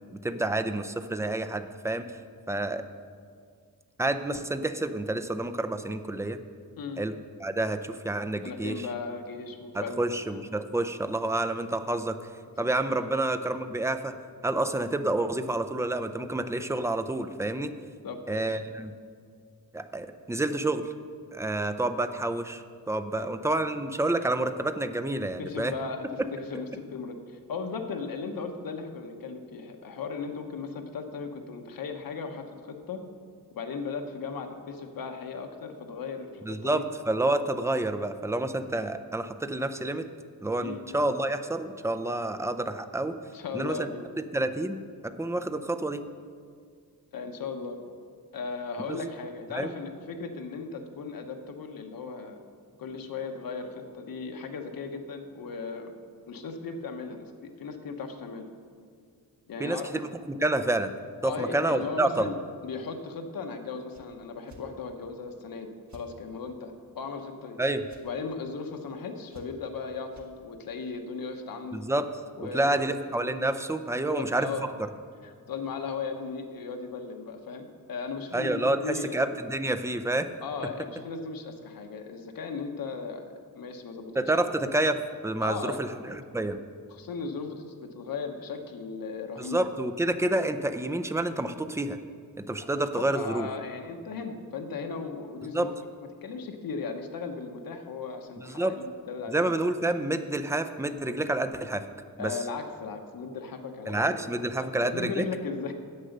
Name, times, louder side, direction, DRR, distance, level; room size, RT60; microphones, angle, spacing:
voice 1, 0.2-2.1 2.5-2.8 4.0-6.4 7.0-8.9 9.7-12.2 12.6-14.2 14.4-17.7 18.3-18.9 19.7-20.9 21.3-25.7 26.5-26.6 36.4-40.1 40.4-43.2 43.5-43.9 44.2-46.0 48.9-49.0 49.5-49.7 59.6-60.9 61.2-62.3 67.6-67.9 71.7-72.1 72.4-74.5 78.3-80.3 80.6-80.7 84.2-86.6 89.4-92.0 92.4-93.5 95.5-95.7 98.4-98.8 99.3-101.9 102.2-102.4 103.9-105.3, right 2 dB, 10° right, 8 dB, 0.5 m, -29 dB
voice 2, 8.4-10.0 10.3-10.4 12.6-13.2 18.0-18.4 23.2-23.3 25.4-33.0 33.5-36.9 40.6-40.8 43.3-44.0 47.1-47.8 48.3-52.4 52.8-55.9 56.3-58.5 59.5-59.9 61.2-62.3 62.6-67.6 68.0-71.8 72.4-72.9 74.1-74.6 75.2-79.2 80.4-83.2 83.5-84.1 85.4-85.8 86.9-87.6 87.9-89.6 92.6-92.7 92.9-95.7 96.2-99.6 102.2-104.0 104.3-105.7, left 5 dB, 70° left, 4 dB, 1.1 m, -37 dB
sound 1, 63.9-64.1 64.5-64.6 65.9-66.1 67.9-68.0 69.3-69.7 70.1-70.3, right 2 dB, 50° right, 1.4 m, -52 dB
10.0 x 8.1 x 6.5 m, 2.1 s
wide cardioid pair, 120°, 36 cm